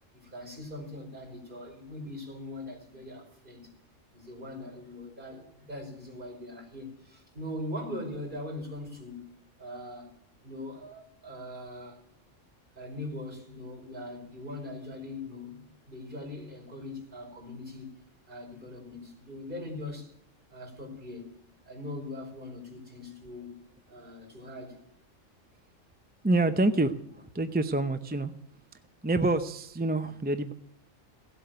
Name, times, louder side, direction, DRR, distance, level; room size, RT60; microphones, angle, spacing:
voice 1, 0.1-3.7 4.1-9.3 9.6-12.0 12.8-17.9 18.3-20.1 20.5-21.3 21.7-23.5 23.9-24.8, left 1 dB, 40° right, 1 dB, 5.4 m, -41 dB
voice 2, 26.2-26.9 27.3-28.3 29.0-30.5, right 2 dB, 10° right, 9 dB, 0.6 m, -26 dB
17.5 x 8.2 x 9.3 m, 0.72 s
omnidirectional pair, 1.3 m